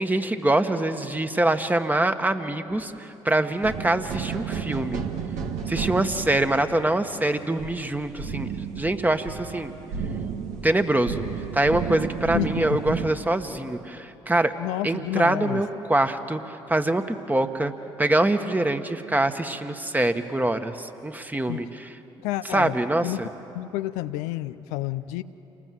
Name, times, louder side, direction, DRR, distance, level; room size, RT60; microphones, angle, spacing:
voice 1, 0.0-5.0 5.7-9.7 10.6-11.2 11.5-14.5 14.8-17.7 18.0-21.9 22.5-23.3, right 1 dB, 15° right, 7 dB, 1.6 m, -24 dB
sound 1, 3.6-13.1, right 6 dB, 70° right, 1.6 m, -32 dB
voice 2, 12.3-12.8 14.6-15.6 21.5-21.6 22.2-22.7 23.0-23.2 23.5-25.2, left 16 dB, 80° left, 11 dB, 0.6 m, -29 dB
28.0 x 20.0 x 7.8 m, 2.9 s
hypercardioid pair, 50°, 12 cm